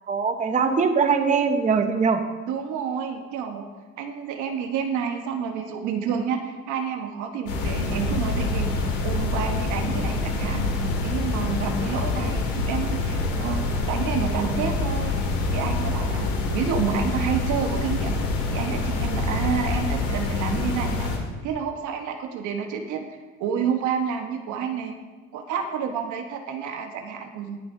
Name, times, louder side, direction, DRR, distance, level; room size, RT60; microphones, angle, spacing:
voice 1, 0.1-2.2, right 5 dB, 25° right, 6 dB, 0.9 m, -21 dB
voice 2, 2.5-3.7 4.0-8.7 9.0-13.6 13.9-15.1 15.5-18.2 18.5-21.1 21.4-23.0 23.4-25.0 25.3-27.6, right 7 dB, 70° right, 5 dB, 1.2 m, -29 dB
sound 1, 7.5-21.2, left 3 dB, 90° left, 2.1 m, -26 dB
19.0 x 6.9 x 2.7 m, 1.3 s
cardioid pair, 105°, 31 cm